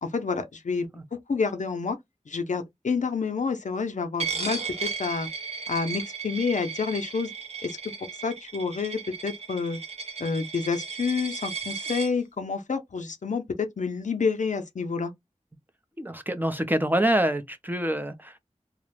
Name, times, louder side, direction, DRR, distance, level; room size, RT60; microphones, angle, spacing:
voice 1, 0.0-2.0 2.3-5.3 5.7-7.3 7.6-7.7 8.2-9.8 10.2-15.1, left 5 dB, 80° left, 0.5 m, -29 dB
Coin (dropping), 4.2-12.1, right 5 dB, 55° right, 0.7 m, -35 dB
voice 2, 16.0-18.4, right 1 dB, 15° right, 0.5 m, -26 dB
2.4 x 2.0 x 3.0 m
wide cardioid pair, 60°, 13 cm